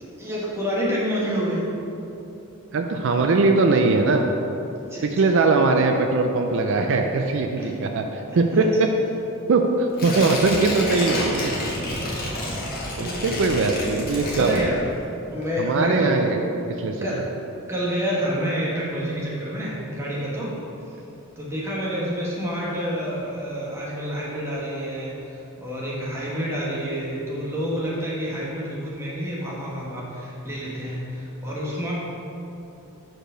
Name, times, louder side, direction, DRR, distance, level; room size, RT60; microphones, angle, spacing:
voice 1, 0.2-1.6 4.8-5.1 7.6-7.7 8.5-8.7 12.5-13.4 14.4-14.8 15.3-16.2 17.0-17.2 17.7-20.6 20.9-21.0 21.4-31.9, equal, 10° right, -6 dB, 1.2 m, -28 dB
voice 2, 2.7-4.3 5.0-8.9 9.5-11.6 13.0-14.7 15.6-16.4 16.8-17.2, right 3 dB, 60° right, 4 dB, 0.4 m, -21 dB
Tearing, 9.9-15.1 15.4-15.5, left 1 dB, 45° left, 1.3 m, -29 dB
5.0 x 4.5 x 6.1 m, 2.9 s
head